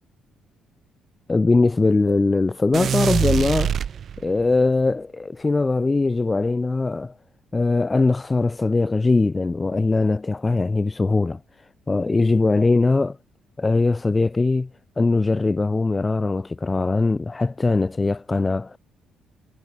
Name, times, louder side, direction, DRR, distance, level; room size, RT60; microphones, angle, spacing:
voice 1, 1.3-3.8 4.2-7.1 7.5-11.4 11.9-13.2 13.6-14.7 15.0-18.8, left 3 dB, 20° left, 1.0 m, -21 dB
sound 1, 2.7-4.5, right 8 dB, 50° right, 1.6 m, -24 dB
cardioid pair, 125°, 0 cm